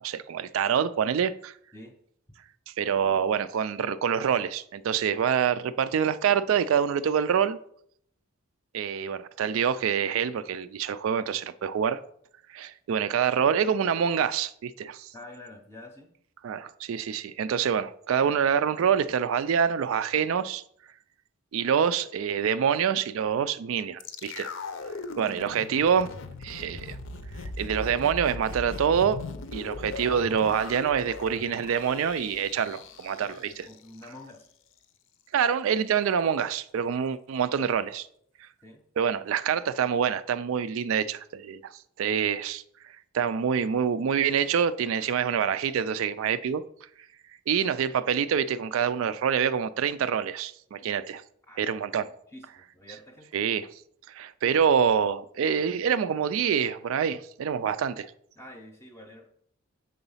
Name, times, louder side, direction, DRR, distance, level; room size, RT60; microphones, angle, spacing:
voice 1, 0.0-1.5 2.8-7.6 8.7-12.0 12.5-15.1 16.4-20.6 21.5-24.5 25.2-26.1 26.4-27.0 27.6-29.2 29.5-33.7 35.3-38.1 38.4-38.5 39.0-41.7 42.0-42.6 43.1-46.6 47.5-51.2 51.6-52.1 53.3-53.7 54.1-58.1, right 7 dB, 70° right, 0.3 m, -26 dB
voice 2, 15.1-16.1 33.2-34.5 38.6-38.8 51.5-51.7 52.0-53.3 58.4-59.3, left 1 dB, 10° left, 0.6 m, -47 dB
sound 1, 24.0-34.1 34.4-34.5, left 3 dB, 60° left, 0.6 m, -39 dB
6.9 x 3.9 x 5.5 m
head